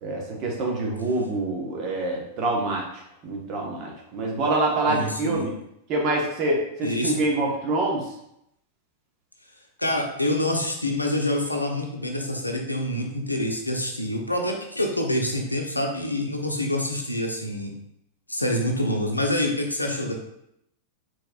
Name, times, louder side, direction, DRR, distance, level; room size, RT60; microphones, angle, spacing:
voice 1, 0.0-5.5 5.9-8.1, right 2 dB, 40° right, -1 dB, 1.2 m, -26 dB
voice 2, 4.9-5.5 6.8-7.2 9.8-17.7 18.3-20.1, left 1 dB, 90° left, 2 dB, 0.6 m, -26 dB
4.5 x 4.2 x 2.4 m, 0.78 s
figure-of-eight pair, 90°, 0 cm